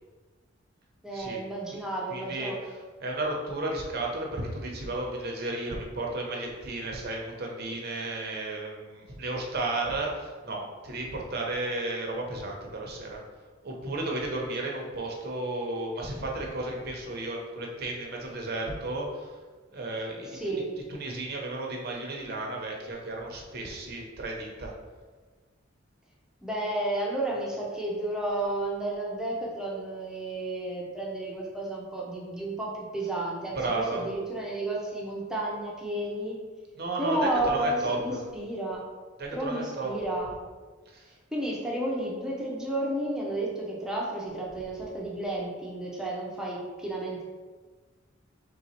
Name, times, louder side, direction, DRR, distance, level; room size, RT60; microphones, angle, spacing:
voice 1, 1.0-2.6 20.3-20.7 26.4-36.4 37.0-38.8 39.3-40.3 41.3-47.2, right 1 dB, 5° right, -4 dB, 0.7 m, -32 dB
voice 2, 2.1-13.2 13.6-19.4 19.7-20.6 20.9-24.7 33.6-34.1 36.8-38.2 39.2-39.9 40.9-41.1, right 2 dB, 50° right, 0 dB, 0.7 m, -33 dB
3.4 x 2.8 x 4.3 m, 1.4 s
head